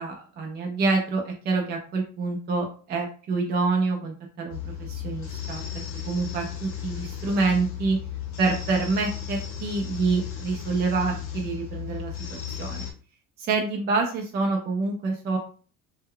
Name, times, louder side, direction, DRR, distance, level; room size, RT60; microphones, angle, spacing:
voice 1, 0.0-8.0 8.4-12.1 12.5-12.9 13.4-15.4, right 3 dB, 30° right, 1 dB, 0.4 m, -27 dB
sound 1, 4.5-12.9, left 9 dB, 45° left, 0.6 m, -35 dB
2.2 x 2.1 x 3.5 m, 0.39 s
cardioid pair, 170°, 32 cm